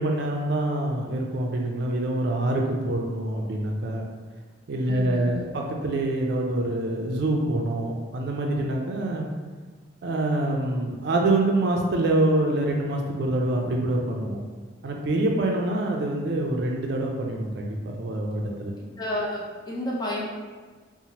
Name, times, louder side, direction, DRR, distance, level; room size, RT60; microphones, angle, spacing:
voice 1, 0.0-4.0 4.7-9.3 10.0-14.4 14.8-18.7, right 1 dB, 65° right, 1 dB, 0.4 m, -25 dB
voice 2, 4.8-5.5 19.0-20.2, left 1 dB, 20° left, -5 dB, 0.6 m, -30 dB
2.8 x 2.0 x 2.8 m, 1.4 s
head